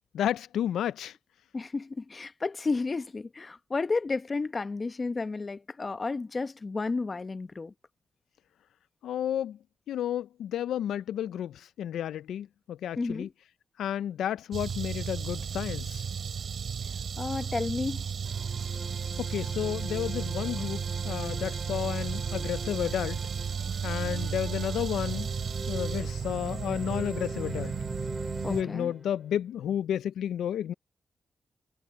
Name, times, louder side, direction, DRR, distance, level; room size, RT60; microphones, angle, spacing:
voice 1, 0.1-1.2 9.0-9.6 9.9-13.3 13.8-16.1 19.2-23.2 23.8-25.3 25.7-27.8 28.5-30.7, left 10 dB, 85° left, 0.4 m, -32 dB
voice 2, 1.5-7.7 13.0-13.3 17.2-18.0 28.4-28.9, left 3 dB, 40° left, 0.9 m, -32 dB
sound 1, 14.5-28.6, right 7 dB, 70° right, 4.1 m, -34 dB
sound 2, 18.2-29.4, right 1 dB, 10° right, 4.2 m, -43 dB
cardioid pair, 55°, 0 cm